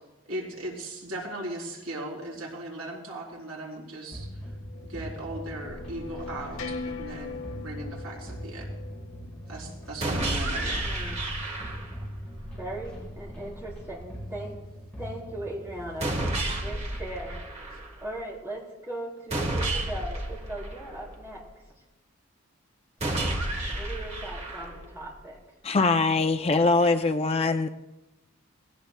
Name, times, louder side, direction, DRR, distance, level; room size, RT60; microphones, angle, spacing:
voice 1, 0.3-4.3 4.8-8.7 9.5-10.9, right 1 dB, 80° right, -2 dB, 3.7 m, -38 dB
sound 1, 4.0-10.5, left 4 dB, 75° left, 1.1 m, -42 dB
sound 2, 4.1-17.4, equal, 5° left, 4.9 m, -41 dB
sound 3, 10.0-12.0 16.0-18.0 19.3-21.3 23.0-25.0, right 1 dB, 30° right, 1.4 m, -31 dB
voice 2, 10.5-11.2 12.6-14.6 15.0-16.3 16.6-17.4 18.0-21.4 23.7-25.4 26.8-26.9, right 1 dB, 10° right, -4 dB, 3.8 m, -38 dB
voice 3, 25.6-27.7, left 3 dB, 25° left, 7 dB, 0.4 m, -22 dB
19.0 x 17.5 x 2.2 m, 1.0 s
head